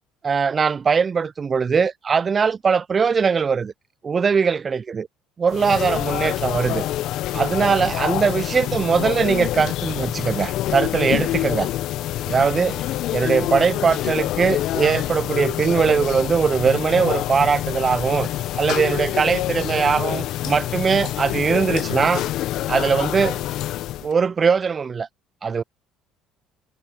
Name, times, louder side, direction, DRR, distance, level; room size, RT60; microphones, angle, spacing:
voice 1, 0.2-3.7 4.0-5.1 5.4-6.9 7.3-11.7 12.3-12.8 13.1-18.3 18.6-22.3 22.7-23.4 24.0-25.1 25.4-25.6, right 6 dB, 35° right, 0.3 m, -21 dB
sound 1, 5.5-24.1, left 14 dB, 65° left, 0.6 m, -26 dB
sound 2, 12.3-13.6 13.9-15.3 15.6-15.9 16.1-17.0 17.3-17.6 17.8-19.1, left 1 dB, 10° left, 4.4 m, -47 dB
hypercardioid pair, 70°, 0 cm